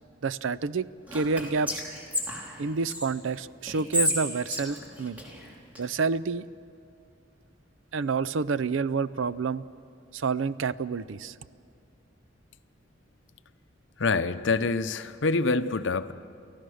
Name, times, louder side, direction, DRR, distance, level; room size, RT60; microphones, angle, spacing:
voice 1, 0.2-1.8 2.6-5.2 5.8-6.4 7.9-9.6 10.1-11.3, right 4 dB, 85° right, 15 dB, 0.5 m, -28 dB
Whispering, 1.1-3.1 3.7-5.8, left 1 dB, 10° right, 3.3 m, -31 dB
voice 2, 14.0-16.1, left 3 dB, 70° left, 12 dB, 0.7 m, -26 dB
29.5 x 14.5 x 6.4 m, 2.3 s
head